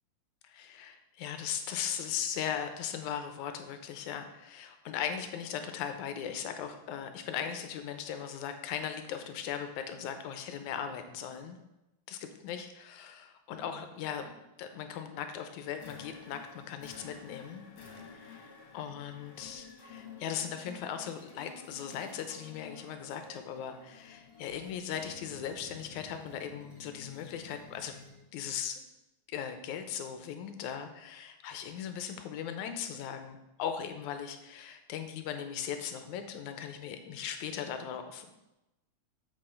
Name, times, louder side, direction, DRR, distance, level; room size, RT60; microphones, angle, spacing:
voice 1, 0.4-11.6 12.1-17.6 18.1-18.5 18.7-27.9 28.3-28.8 29.3-38.3, left 8 dB, 85° left, 7 dB, 2.1 m, -38 dB
sound 1, 15.7-28.3, left 4 dB, 60° left, 2.5 m, -51 dB
7.7 x 6.3 x 4.4 m, 0.95 s
omnidirectional pair, 3.4 m